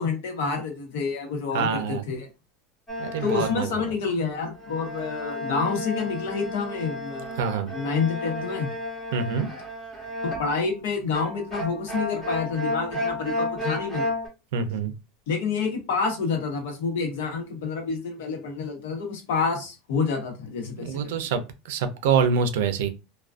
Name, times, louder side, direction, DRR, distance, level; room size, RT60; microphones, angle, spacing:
voice 1, 0.0-2.3 3.2-8.7 10.4-14.1 15.3-21.1, left 5 dB, 85° left, 0.9 m, -28 dB
voice 2, 1.5-2.0 3.0-3.8 7.4-7.7 9.1-9.5 14.5-14.9 20.8-21.4 21.7-22.9, right 6 dB, 80° right, 0.4 m, -25 dB
sound 1, 2.9-3.8 4.6-10.7 11.1-14.3, left 1 dB, 5° left, 0.8 m, -32 dB
2.3 x 2.2 x 2.4 m
supercardioid pair, 165°, 0 cm